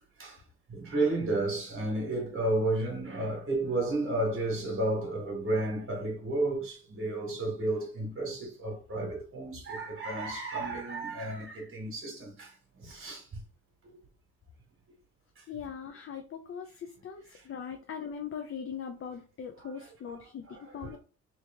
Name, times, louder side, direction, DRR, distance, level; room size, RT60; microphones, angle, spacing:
voice 1, 0.7-13.4 13.8-14.0 15.4-15.5 20.5-20.6, right 2 dB, 45° right, 1.4 m, -32 dB
voice 2, 15.5-21.0, left 7 dB, 45° left, 0.6 m, -40 dB
3.0 x 3.0 x 3.4 m
cardioid pair, 90°, 30 cm